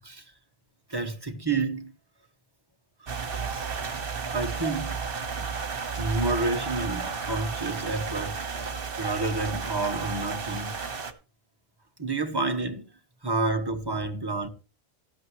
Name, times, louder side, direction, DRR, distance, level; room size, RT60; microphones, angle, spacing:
voice 1, 0.9-1.9 3.0-3.8 4.3-5.0 5.3-5.5 6.0-10.7 12.0-12.8 13.2-14.5, right 3 dB, 25° right, 1.3 m, -30 dB
sound 1, 3.1-11.1, right 5 dB, 65° right, 1.5 m, -33 dB
14.0 x 12.0 x 3.1 m
omnidirectional pair, 1.0 m